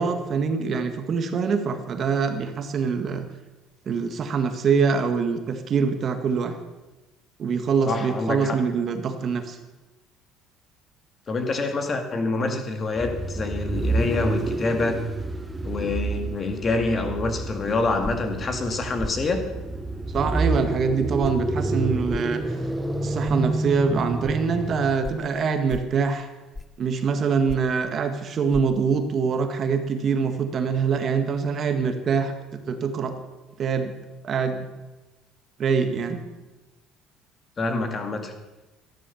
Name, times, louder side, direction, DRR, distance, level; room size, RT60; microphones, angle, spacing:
voice 1, 0.0-3.3 3.9-6.6 7.4-9.6 20.1-22.6 23.0-26.3 26.8-33.2 33.6-34.0 34.2-34.7 35.6-36.2, right 5 dB, 45° right, 7 dB, 1.7 m, -24 dB
voice 2, 7.9-8.6 11.3-15.0 15.6-19.4 37.6-38.3, left 3 dB, 35° left, 6 dB, 2.1 m, -26 dB
sound 1, 13.0-25.1, right 2 dB, 10° right, 1.1 m, -29 dB
sound 2, 18.0-18.3 19.0-19.2 20.1-20.3 21.2-21.4 22.1-22.3 23.3-23.4 24.2-24.4 25.0-25.2 25.7-26.0 26.5-26.8 27.5-27.8 28.5-28.6, left 2 dB, 15° left, 0.7 m, -35 dB
13.5 x 11.0 x 7.1 m, 1.1 s
cardioid pair, 105°, 0 cm